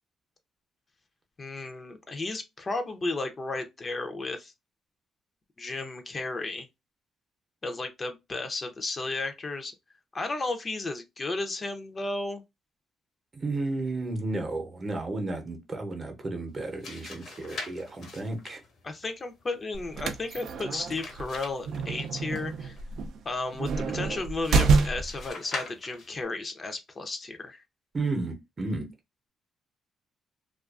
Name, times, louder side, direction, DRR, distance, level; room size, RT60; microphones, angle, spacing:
voice 1, 1.4-4.5 5.6-6.7 7.6-9.7 10.1-12.4 18.8-22.8 23.2-27.6, left 3 dB, 35° left, 0.5 m, -33 dB
voice 2, 13.3-18.6 27.9-28.9, right 2 dB, 35° right, 0.7 m, -33 dB
sound 1, 16.5-22.8 25.0-26.3, left 3 dB, 65° left, 0.8 m, -43 dB
sound 2, 19.7-25.3, right 4 dB, 70° right, 0.4 m, -28 dB
2.4 x 2.3 x 2.3 m
cardioid pair, 90°, 0 cm